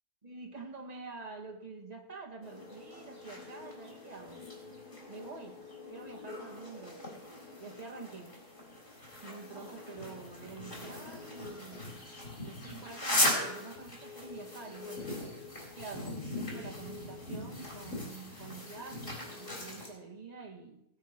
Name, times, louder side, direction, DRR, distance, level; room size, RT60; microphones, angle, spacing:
voice 1, 0.2-4.4 5.1-7.1 7.6-8.4 9.2-12.0 12.4-15.4 15.7-20.9, right 4 dB, 25° right, 0 dB, 2.0 m, -47 dB
sound 1, 2.4-19.9, left 1 dB, 55° left, 4.5 m, -39 dB
19.0 x 6.7 x 6.1 m, 0.85 s
omnidirectional pair, 1.5 m